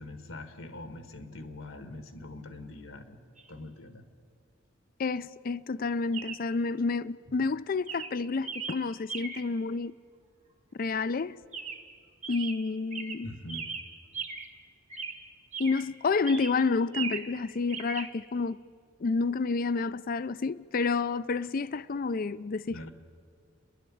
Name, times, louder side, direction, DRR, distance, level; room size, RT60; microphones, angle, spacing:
voice 1, 0.0-3.2 3.5-4.0 13.2-13.6 22.7-22.9, left 1 dB, 80° left, 1.7 m, -43 dB
Chirp tweet, 3.4-3.5 6.1-6.5 7.3-7.5 7.9-9.6 11.5-12.0 12.2-14.6 14.9-15.9 16.2-17.4 17.7-18.1, right 5 dB, 35° right, 1.1 m, -39 dB
voice 2, 5.0-9.9 10.7-11.4 12.3-13.3 15.6-18.6 19.0-22.9, left 4 dB, 45° left, 0.4 m, -29 dB
29.0 x 11.0 x 8.6 m
head